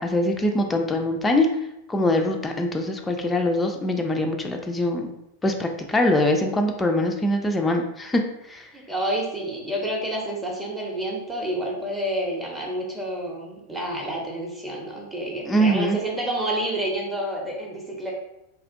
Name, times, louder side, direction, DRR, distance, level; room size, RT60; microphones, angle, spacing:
voice 1, 0.0-1.5 1.9-5.1 5.4-8.2 8.5-8.7 15.5-16.0, left 1 dB, 10° left, 3 dB, 0.3 m, -23 dB
voice 2, 8.7-18.1, right 1 dB, 10° right, -2 dB, 0.7 m, -29 dB
2.9 x 2.4 x 2.4 m, 0.83 s
figure-of-eight pair, 90°, 0 cm